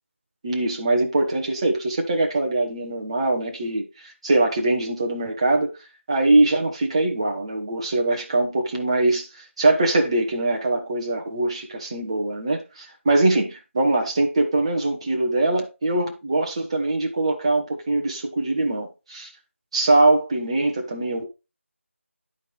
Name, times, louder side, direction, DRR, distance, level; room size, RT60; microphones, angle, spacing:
voice 1, 0.4-5.7 6.1-19.3 19.7-21.2, right 2 dB, 25° right, 1.3 m, -22 dB
11.0 x 4.7 x 3.3 m
figure-of-eight pair, 170°, 7 cm